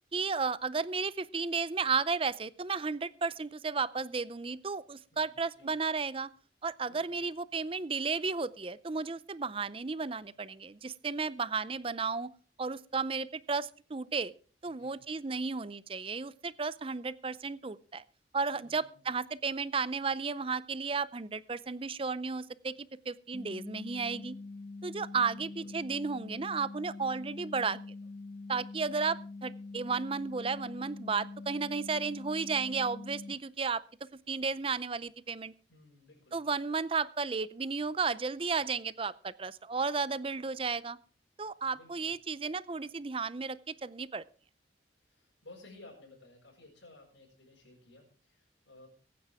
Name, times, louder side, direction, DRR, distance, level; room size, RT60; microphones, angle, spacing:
voice 1, 0.1-6.3 6.6-12.3 12.6-14.3 14.6-18.0 18.3-22.7 23.1-24.4 24.8-27.8 28.5-33.8 34.3-35.5 36.3-41.0 41.4-44.2, right 4 dB, 30° right, 18 dB, 0.5 m, -33 dB
voice 2, 5.1-5.7 6.9-7.2 14.6-15.0 18.5-19.1 25.3-25.7 35.7-36.4 41.7-42.1 45.0-48.9, left 2 dB, 85° left, -4 dB, 5.8 m, -56 dB
sound 1, 23.3-33.3, left 3 dB, 15° left, 1.0 m, -44 dB
23.0 x 9.4 x 3.5 m, 0.38 s
head